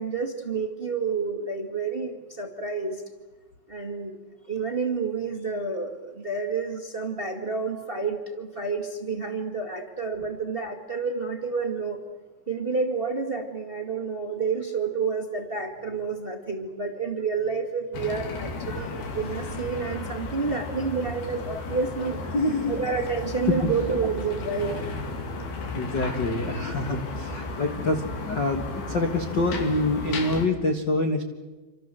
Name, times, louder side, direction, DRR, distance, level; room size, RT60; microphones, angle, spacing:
voice 1, 0.0-3.0 3.7-4.2 4.5-12.0 12.5-22.2 22.7-24.8, right 4 dB, 20° right, 5 dB, 1.5 m, -29 dB
sound 1, 17.9-30.5, left 3 dB, 80° left, 4.8 m, -34 dB
voice 2, 22.3-22.7 23.5-23.7 25.7-31.2, left 2 dB, 50° left, 6 dB, 1.3 m, -26 dB
28.0 x 26.5 x 7.7 m, 1.3 s
omnidirectional pair, 4.4 m